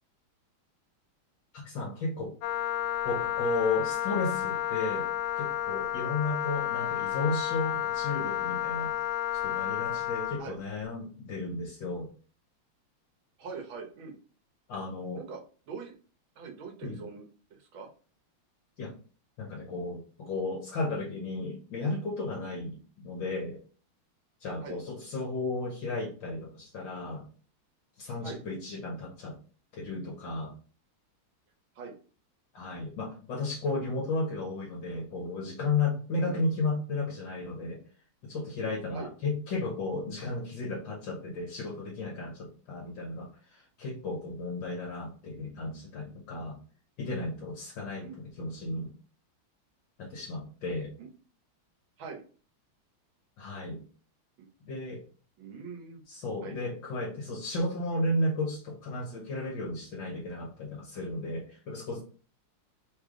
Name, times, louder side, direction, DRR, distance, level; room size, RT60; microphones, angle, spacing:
voice 1, 1.5-2.4 3.0-5.1 5.4-8.9 9.3-12.1 14.7-15.2 16.8-17.0 18.8-19.0 19.4-22.8 23.0-23.6 24.4-27.3 28.0-29.4 29.8-30.6 32.5-37.8 38.2-46.6 47.0-48.9 50.0-50.9 53.4-53.8 54.7-55.0 56.1-62.0, left 2 dB, 65° left, -2 dB, 1.7 m, -34 dB
Wind instrument woodwind instrument, 2.4-10.4, left 11 dB, 90° left, 1.5 m, -31 dB
voice 2, 13.4-14.2 15.1-15.4 15.7-15.9 16.4-17.2 17.5-17.9 24.6-24.8 28.2-28.4 31.7-31.9 36.2-36.4 38.9-39.1 47.9-48.2 51.0-51.1 52.0-52.2 54.4-54.5 55.4-56.0 56.4-56.8, right 5 dB, 70° right, 2 dB, 1.7 m, -42 dB
4.0 x 3.3 x 3.7 m, 0.39 s
omnidirectional pair, 2.3 m